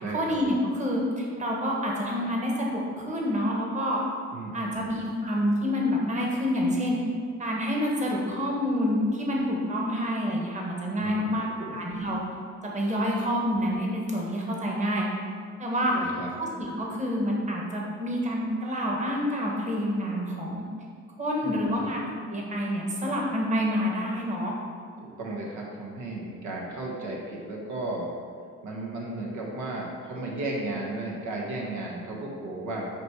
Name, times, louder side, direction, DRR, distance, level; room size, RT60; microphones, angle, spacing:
voice 1, 0.0-4.0 4.5-7.0 7.4-11.5 11.7-12.2 12.7-15.1 15.6-15.9 16.4-20.6 21.2-24.5, equal, 25° right, -2 dB, 1.4 m, -28 dB
voice 2, 4.3-4.9 11.0-11.7 15.9-16.3 21.4-21.9 25.0-28.2 28.6-32.9, right 2 dB, 70° right, -3 dB, 1.3 m, -34 dB
8.7 x 3.2 x 4.7 m, 2.2 s
cardioid pair, 90°, 30 cm